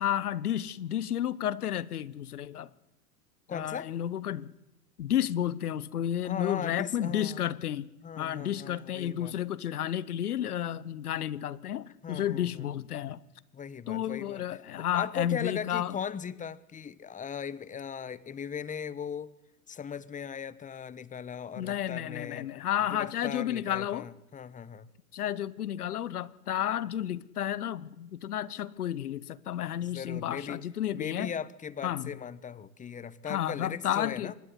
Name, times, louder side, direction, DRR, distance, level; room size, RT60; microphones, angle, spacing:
voice 1, 0.0-2.7 3.5-4.5 5.0-7.9 8.1-13.2 13.9-16.0 21.6-24.1 25.1-31.3 31.8-32.2 33.3-34.3, left 11 dB, 80° left, 1.3 m, -32 dB
voice 2, 3.5-3.9 6.2-7.5 8.0-9.3 12.0-12.7 13.5-14.4 14.7-19.3 19.7-22.5 22.9-24.9 29.9-30.6 30.9-34.3, left 7 dB, 15° left, 1.2 m, -38 dB
25.0 x 20.5 x 9.7 m
hypercardioid pair, 105°, 44 cm